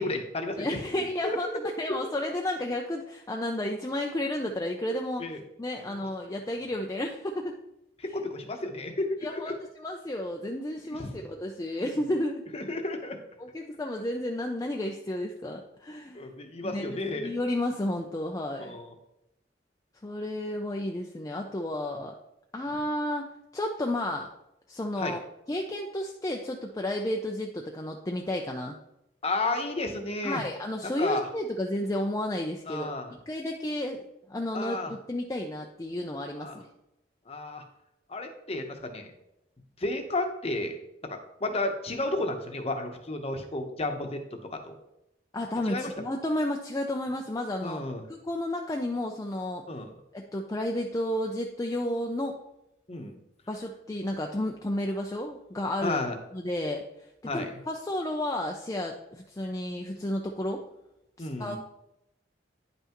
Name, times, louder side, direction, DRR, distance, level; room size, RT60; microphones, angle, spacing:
voice 1, 0.0-1.5 2.0-2.1 5.2-5.4 5.9-6.0 8.0-9.5 10.9-11.2 12.5-13.2 16.1-17.3 18.6-18.9 25.0-25.2 29.2-30.4 30.8-31.3 32.7-33.1 34.5-34.9 36.4-36.6 37.3-37.6 38.1-39.1 39.8-40.8 41.1-44.2 44.5-44.7 45.7-45.9 47.6-48.0 49.7-49.9 52.9-53.1 55.8-56.2 57.2-57.5 61.2-61.6, left 2 dB, 35° left, 5 dB, 0.9 m, -32 dB
voice 2, 0.6-5.3 5.6-7.6 9.2-12.4 13.4-16.3 16.6-18.8 20.0-22.2 22.5-24.3 24.7-25.2 25.5-28.8 30.2-32.9 33.3-34.0 34.3-36.7 45.3-47.8 48.1-49.6 50.1-52.3 53.5-56.0 56.3-56.8 57.3-60.6 61.2-61.6, left 1 dB, 20° left, 1 dB, 0.4 m, -32 dB
9.6 x 5.6 x 3.0 m, 0.84 s
head